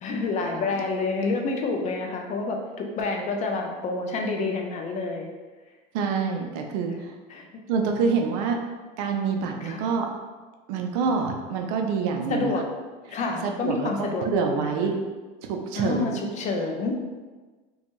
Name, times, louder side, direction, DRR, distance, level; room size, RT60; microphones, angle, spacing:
voice 1, 0.0-5.3 7.3-7.5 9.6-9.8 12.3-12.6 13.1-14.7 15.7-17.0, left 3 dB, 35° left, 2 dB, 0.4 m, -28 dB
voice 2, 5.9-7.1 7.7-8.6 9.0-10.1 10.7-12.5 13.1-13.2 13.4-14.9 15.4-16.2, right 5 dB, 70° right, 3 dB, 0.5 m, -26 dB
2.5 x 2.3 x 2.9 m, 1.3 s
supercardioid pair, 120°, 20 cm